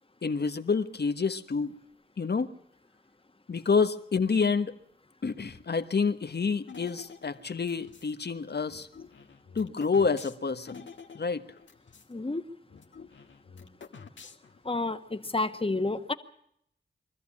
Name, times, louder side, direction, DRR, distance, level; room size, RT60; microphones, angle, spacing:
voice 1, 0.2-1.8 2.2-2.5 3.5-4.7 5.2-8.9 9.5-10.8 11.1-11.4, left 5 dB, 65° left, 10 dB, 1.4 m, -28 dB
sound 1, 6.7-8.1 8.7-12.1 12.4-12.5 12.7-14.7, left 5 dB, 90° left, 1.7 m, -49 dB
voice 2, 12.1-12.4 14.6-16.1, left 2 dB, 30° left, 8 dB, 1.6 m, -30 dB
24.0 x 14.0 x 8.6 m, 0.71 s
wide cardioid pair, 65°, 19 cm